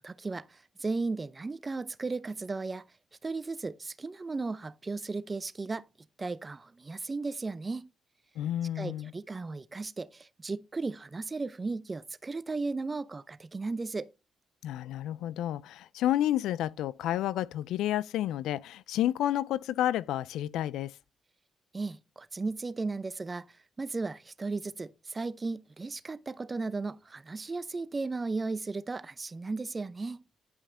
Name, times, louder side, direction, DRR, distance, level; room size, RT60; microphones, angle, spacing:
voice 1, 0.0-2.8 3.2-5.9 6.2-7.9 8.8-14.1 21.7-30.2, right 3 dB, 30° right, 0.6 m, -35 dB
voice 2, 8.4-9.1 14.6-20.9, left 12 dB, 80° left, 0.3 m, -30 dB
10.5 x 5.6 x 3.3 m
supercardioid pair, 55°, 0 cm